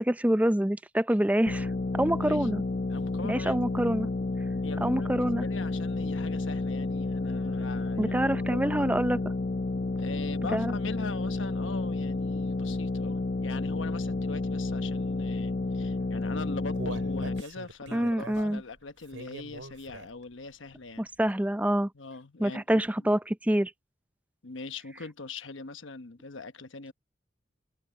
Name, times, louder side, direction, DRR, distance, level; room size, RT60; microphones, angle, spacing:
voice 1, 0.0-1.7 1.9-2.6 3.2-4.1 4.8-5.4 8.0-9.2 10.5-10.7 17.9-18.6 21.0-21.9 22.4-23.7, right 1 dB, 10° right, 0.5 m, -26 dB
sound 1, 1.5-17.4, left 2 dB, 45° left, 0.8 m, -31 dB
voice 2, 2.9-3.6 4.6-8.9 10.0-21.1 21.9-23.1 24.4-26.9, left 3 dB, 80° left, 1.1 m, -41 dB
Human voice, 16.1-20.3 20.7-20.8 21.3-21.4, right 2 dB, 90° right, 5.5 m, -43 dB
open air
head